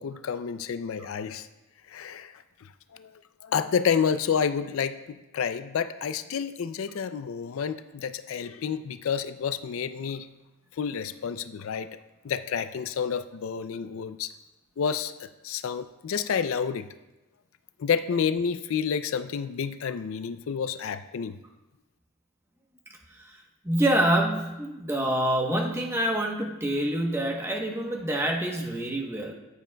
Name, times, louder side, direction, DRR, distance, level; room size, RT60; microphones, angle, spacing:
voice 1, 0.0-1.5 1.9-2.3 2.6-3.1 3.4-10.3 10.8-11.9 12.2-14.3 14.8-16.9 17.8-21.4, left 7 dB, 70° left, 11 dB, 0.4 m, -29 dB
voice 2, 23.6-29.3, right 1 dB, 10° right, 0 dB, 0.9 m, -26 dB
14.0 x 9.8 x 2.2 m, 1.0 s
head